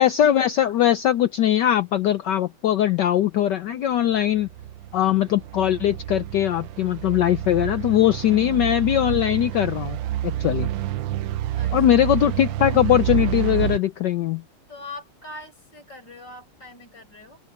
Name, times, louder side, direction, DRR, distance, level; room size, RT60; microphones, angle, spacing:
voice 1, 0.0-4.5 4.9-10.0 10.2-10.7 11.7-14.4, left 11 dB, 70° left, 1.1 m, -20 dB
sound 1, 4.1-13.8, right 13 dB, 75° right, 1.2 m, -29 dB
voice 2, 14.7-17.4, left 2 dB, 50° left, 8.4 m, -41 dB
open air
omnidirectional pair, 2.4 m